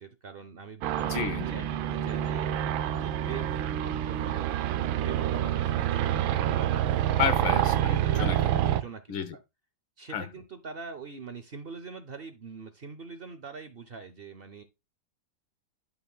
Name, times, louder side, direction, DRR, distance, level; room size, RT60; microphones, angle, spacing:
voice 1, 0.0-2.5 3.0-6.7 8.0-9.1 10.0-14.6, right 5 dB, 65° right, 0.5 m, -43 dB
sound 1, 0.8-8.8, right 11 dB, 85° right, 1.4 m, -27 dB
voice 2, 1.1-1.7 7.2-8.5 9.1-9.4 10.1-10.3, left 8 dB, 80° left, 1.8 m, -31 dB
11.5 x 5.7 x 2.2 m
omnidirectional pair, 2.1 m